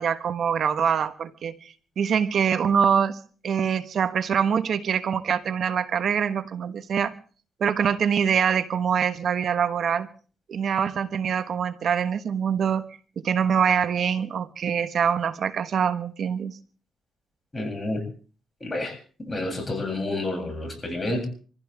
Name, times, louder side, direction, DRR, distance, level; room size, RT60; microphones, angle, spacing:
voice 1, 0.0-3.2 3.4-7.1 7.6-10.1 10.5-12.8 13.2-16.6, right 7 dB, 65° right, 10 dB, 1.4 m, -24 dB
voice 2, 17.5-18.0 18.6-21.3, left 2 dB, 25° left, 2 dB, 7.7 m, -29 dB
26.0 x 15.5 x 3.6 m, 0.40 s
cardioid pair, 80°, 0 cm